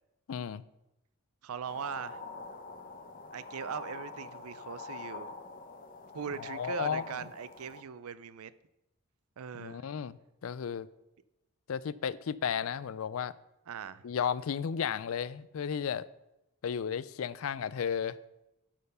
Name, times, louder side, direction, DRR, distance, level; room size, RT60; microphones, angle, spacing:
voice 1, 0.3-0.6 6.3-7.0 9.5-10.9 11.7-13.3 14.0-16.1 16.6-18.2, left 7 dB, 70° left, 0.4 m, -34 dB
voice 2, 1.4-2.2 3.3-5.3 6.1-8.5 9.4-9.9 13.7-14.1, right 7 dB, 80° right, 0.5 m, -40 dB
sound 1, 1.6-7.8, left 4 dB, 40° left, 0.8 m, -45 dB
11.5 x 4.5 x 5.5 m
head